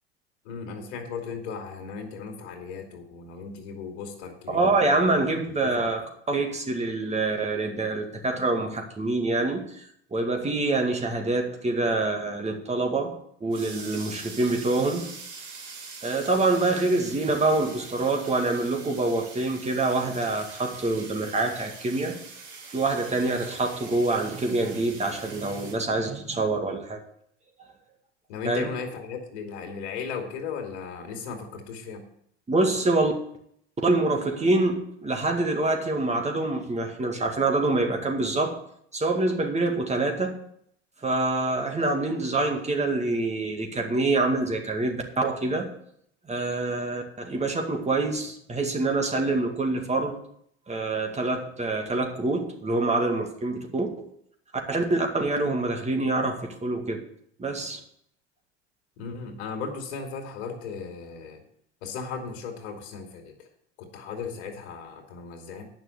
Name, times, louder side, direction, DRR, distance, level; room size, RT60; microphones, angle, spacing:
voice 1, 0.4-5.0 5.6-5.9 28.3-32.0 59.0-61.4 61.8-63.5 63.8-65.6, left 5 dB, 70° left, 3 dB, 2.6 m, -36 dB
voice 2, 4.5-6.0 6.3-15.1 16.0-22.2 22.7-27.0 27.6-27.7 28.5-28.7 32.5-33.1 33.8-38.6 38.9-40.4 41.0-45.7 46.3-50.2 50.7-53.9 54.7-57.0 57.4-57.8, right 2 dB, 20° right, 3 dB, 2.2 m, -26 dB
sound 1, 13.5-25.7, right 4 dB, 70° right, 4.2 m, -43 dB
9.5 x 6.2 x 8.2 m, 0.70 s
hypercardioid pair, 85°, 34 cm